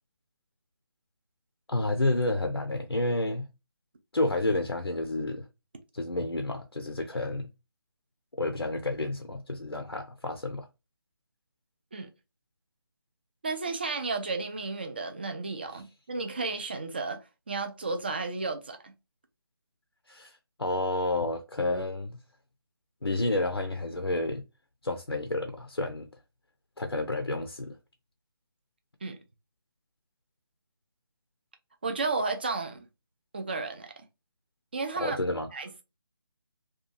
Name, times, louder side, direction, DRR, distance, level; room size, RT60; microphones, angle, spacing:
voice 1, 1.7-3.5 4.1-5.4 5.9-7.5 8.4-10.7 20.1-22.2 23.0-24.4 24.8-26.1 26.8-27.7 35.0-35.5, left 2 dB, 90° left, 0.5 m, -30 dB
voice 2, 13.4-17.2 17.5-18.9 29.0-29.2 31.8-32.9 33.3-33.9 34.7-35.2 35.5-35.8, right 3 dB, 25° right, 0.4 m, -33 dB
2.7 x 2.2 x 2.6 m
figure-of-eight pair, 150°, 13 cm